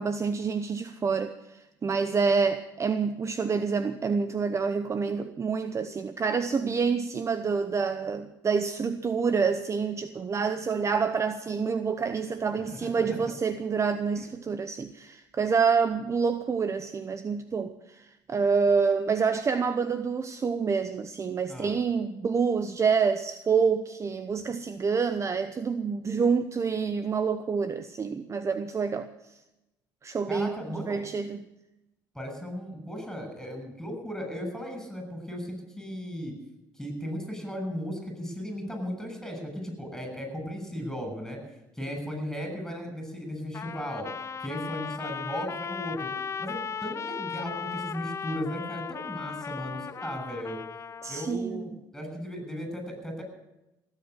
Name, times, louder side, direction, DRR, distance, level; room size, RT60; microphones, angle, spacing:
voice 1, 0.0-29.1 30.0-31.4 51.0-51.7, right 5 dB, 35° right, 0.9 m, -27 dB
voice 2, 12.7-13.1 21.5-21.7 30.3-31.0 32.1-36.3 36.7-41.4 41.7-44.1 44.4-46.1 46.4-50.6 51.1-53.2, equal, 5° left, 7.2 m, -36 dB
Trumpet, 43.5-51.3, left 6 dB, 30° left, 0.5 m, -37 dB
17.5 x 8.2 x 8.3 m
supercardioid pair, 75°, 9 cm